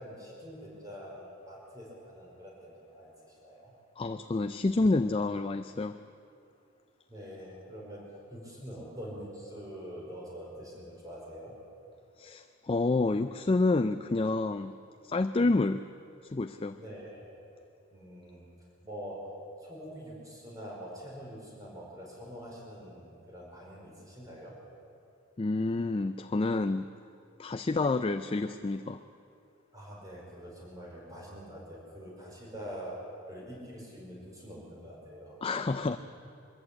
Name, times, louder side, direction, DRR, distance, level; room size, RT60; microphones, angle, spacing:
voice 1, 0.0-3.7 7.1-11.5 16.7-17.3 17.9-18.5 18.8-19.2 19.6-24.5 29.7-33.0 33.3-35.4, equal, 15° right, -3 dB, 4.9 m, -45 dB
voice 2, 4.0-6.0 12.2-14.7 15.0-15.8 16.3-16.8 25.4-26.9 27.4-29.0 35.4-36.0, left 3 dB, 25° left, 10 dB, 0.4 m, -28 dB
23.0 x 14.5 x 8.6 m, 2.7 s
head